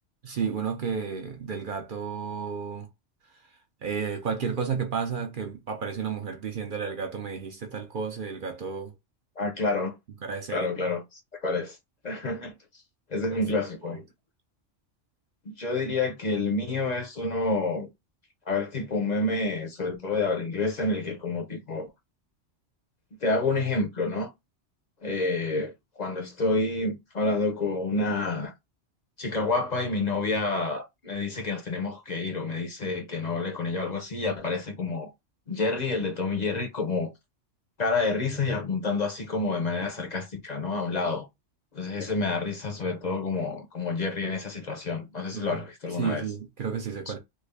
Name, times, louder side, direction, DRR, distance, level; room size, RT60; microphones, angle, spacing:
voice 1, 0.2-2.9 3.8-8.9 10.2-10.7 13.3-13.4 13.8-14.0 45.3-45.6 46.0-47.2, right 6 dB, 55° right, 0.7 m, -32 dB
voice 2, 9.4-10.0 10.5-11.8 12.0-12.5 13.1-14.0 15.4-17.9 18.5-21.9 23.2-24.3 25.0-28.5 29.2-35.1 35.5-37.1 37.8-41.3 41.7-46.2 47.1-47.2, left 3 dB, 45° left, 0.6 m, -28 dB
3.2 x 2.4 x 3.4 m
omnidirectional pair, 1.2 m